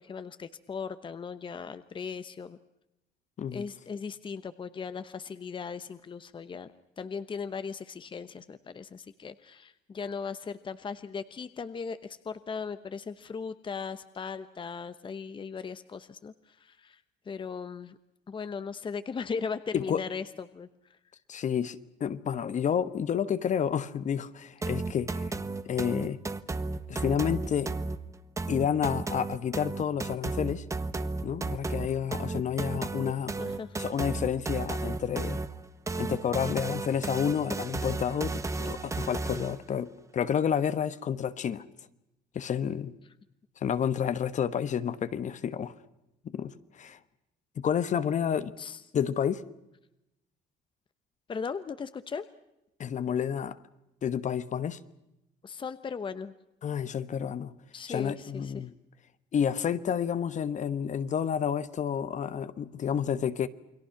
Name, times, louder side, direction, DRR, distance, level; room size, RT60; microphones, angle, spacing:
voice 1, 0.0-2.6 3.5-17.0 17.3-18.0 18.3-20.7 33.3-33.8 48.6-48.8 51.3-52.2 55.4-56.3 57.7-58.6, left 5 dB, 30° left, 1.0 m, -38 dB
voice 2, 21.3-25.3 25.6-26.2 26.9-27.7 28.5-30.6 31.2-33.4 33.8-35.4 36.0-41.6 42.3-42.9 43.6-45.7 46.2-47.0 47.6-48.5 48.9-49.4 52.8-53.6 54.0-54.8 56.6-57.5 57.9-58.7 59.3-63.5, left 8 dB, 45° left, 1.2 m, -30 dB
sound 1, 24.6-39.6, right 3 dB, 15° right, 1.2 m, -34 dB
29.0 x 22.0 x 5.9 m
cardioid pair, 110°, 17 cm